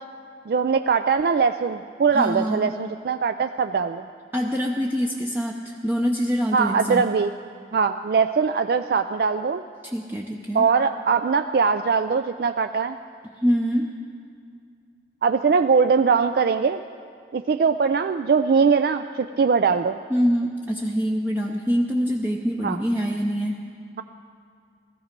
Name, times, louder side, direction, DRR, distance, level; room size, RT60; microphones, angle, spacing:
voice 1, 0.5-4.0 6.5-7.3 7.7-9.6 10.5-13.0 15.2-16.8 17.3-20.0 22.6-22.8, right 5 dB, 55° right, 9 dB, 0.3 m, -21 dB
voice 2, 2.1-2.7 4.3-7.0 9.8-10.7 13.4-13.9 20.1-23.6, equal, 10° right, 0 dB, 0.6 m, -25 dB
16.0 x 14.0 x 5.1 m, 2.2 s
head